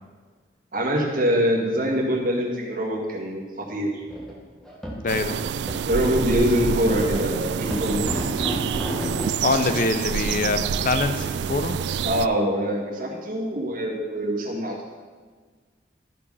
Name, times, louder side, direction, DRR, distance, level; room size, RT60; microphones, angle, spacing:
voice 1, 0.7-3.4 3.7-3.9 5.9-8.0 12.0-14.8, equal, 50° right, -2 dB, 1.8 m, -24 dB
sound 1, 4.1-4.3 4.6-5.2 5.7-5.8 6.0-6.1 6.9-9.3 9.7-9.8, equal, 5° left, 1.3 m, -31 dB
voice 2, 5.0-5.4 9.4-11.8, left 3 dB, 45° left, 9 dB, 0.6 m, -24 dB
sound 2, 5.1-12.3, right 7 dB, 70° right, 0.3 m, -27 dB
12.5 x 5.3 x 5.5 m, 1.5 s
head